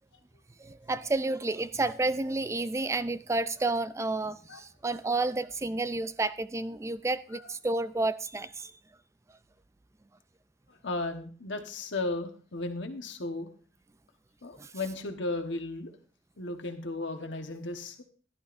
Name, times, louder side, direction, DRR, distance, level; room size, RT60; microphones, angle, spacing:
voice 1, 0.6-8.7 14.6-14.7, right 2 dB, 15° right, 0.4 m, -30 dB
voice 2, 10.8-13.5 14.4-15.9 16.4-18.0, left 2 dB, 70° left, 1.2 m, -35 dB
14.5 x 11.5 x 2.6 m
head